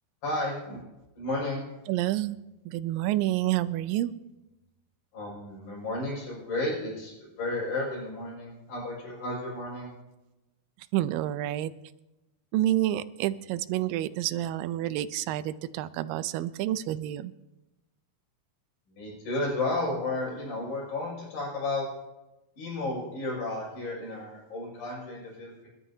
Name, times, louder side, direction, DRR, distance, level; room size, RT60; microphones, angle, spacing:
voice 1, 0.2-0.8 1.2-1.6 5.1-9.9 18.9-21.9 22.6-25.7, left 2 dB, 80° left, -4 dB, 7.6 m, -33 dB
voice 2, 1.9-2.4 2.7-4.1 10.9-11.7 12.5-17.3, right 14 dB, 80° right, 13 dB, 2.2 m, -28 dB
29.0 x 11.5 x 2.8 m, 1.0 s
omnidirectional pair, 4.1 m